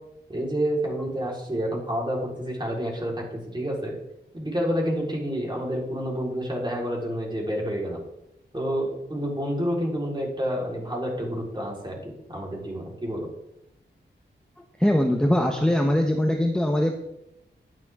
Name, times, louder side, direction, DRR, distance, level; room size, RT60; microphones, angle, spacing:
voice 1, 0.3-3.9 4.3-8.0 8.5-13.3, equal, 25° right, -2 dB, 4.4 m, -29 dB
voice 2, 14.8-17.0, left 1 dB, 5° left, 3 dB, 1.0 m, -22 dB
12.0 x 9.3 x 3.7 m, 0.86 s
cardioid pair, 65°, 19 cm